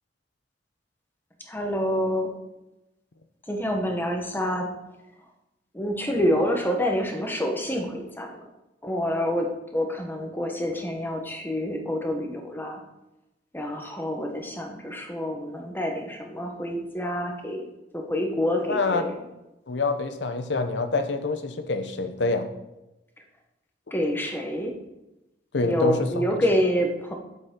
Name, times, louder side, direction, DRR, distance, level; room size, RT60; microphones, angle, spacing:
voice 1, 1.5-2.3 3.5-4.7 5.7-8.4 8.8-12.8 13.5-17.7 17.9-19.1 23.9-24.7 25.6-27.1, equal, 10° left, 2 dB, 1.0 m, -27 dB
voice 2, 18.7-19.0 19.7-22.5 25.5-26.2 26.5-26.6, left 3 dB, 75° left, 9 dB, 0.8 m, -26 dB
8.0 x 7.0 x 3.7 m, 0.96 s
head